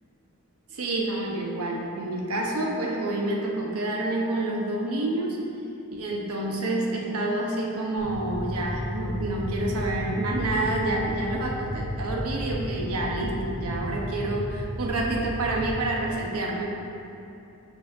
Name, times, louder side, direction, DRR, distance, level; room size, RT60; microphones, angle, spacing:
voice 1, 0.7-5.4 5.9-16.7, right 2 dB, 85° right, -1 dB, 1.0 m, -28 dB
sound 1, 8.0-15.7, equal, 85° left, 1.6 m, -33 dB
11.0 x 6.3 x 2.7 m, 2.8 s
head